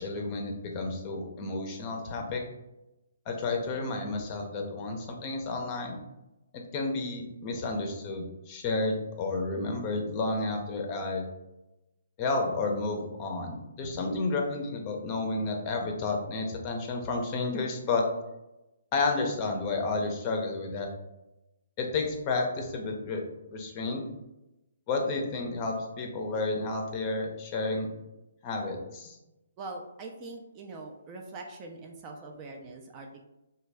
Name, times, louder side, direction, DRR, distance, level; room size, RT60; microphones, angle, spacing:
voice 1, 0.0-2.4 3.3-6.0 6.5-11.3 12.2-18.0 18.9-20.9 21.8-23.2 23.5-24.0 24.9-27.9 28.4-29.2, left 3 dB, 30° left, 2 dB, 0.6 m, -31 dB
voice 2, 29.6-33.2, right 3 dB, 25° right, 2 dB, 0.4 m, -43 dB
3.1 x 2.2 x 3.4 m, 0.95 s
hypercardioid pair, 145°, 0 cm